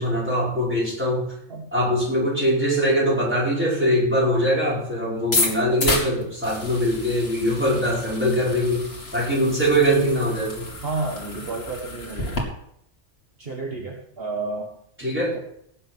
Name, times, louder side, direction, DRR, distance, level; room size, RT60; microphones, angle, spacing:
voice 1, 0.0-1.3 1.7-10.7 15.0-15.4, equal, 10° right, -6 dB, 5.4 m, -22 dB
sound 1, 5.2-12.4, left 2 dB, 50° left, 2.7 m, -30 dB
voice 2, 10.8-12.4 13.4-14.7 15.3-15.4, right 3 dB, 50° right, 0 dB, 1.7 m, -31 dB
17.5 x 6.6 x 6.1 m, 0.72 s
omnidirectional pair, 1.3 m